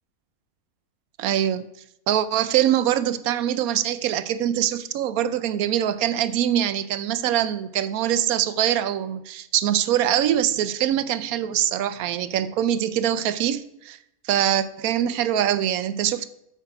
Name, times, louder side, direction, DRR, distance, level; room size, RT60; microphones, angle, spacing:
voice 1, 1.2-1.6 2.1-14.0 14.2-16.3, right 11 dB, 90° right, 14 dB, 1.1 m, -23 dB
8.2 x 4.6 x 5.9 m, 0.82 s
omnidirectional pair, 1.5 m